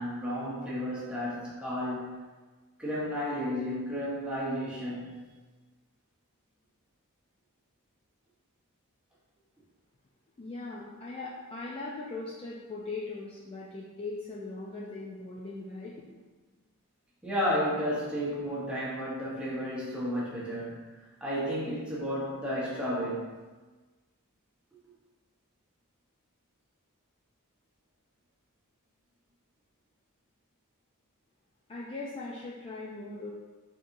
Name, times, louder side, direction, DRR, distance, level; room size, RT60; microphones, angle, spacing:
voice 1, 0.0-2.2 2.8-5.2 17.2-20.8 21.2-23.3, equal, 5° right, -8 dB, 0.9 m, -32 dB
voice 2, 10.4-16.1 31.7-33.3, left 3 dB, 25° left, -5 dB, 0.3 m, -39 dB
3.8 x 2.8 x 2.6 m, 1.3 s
head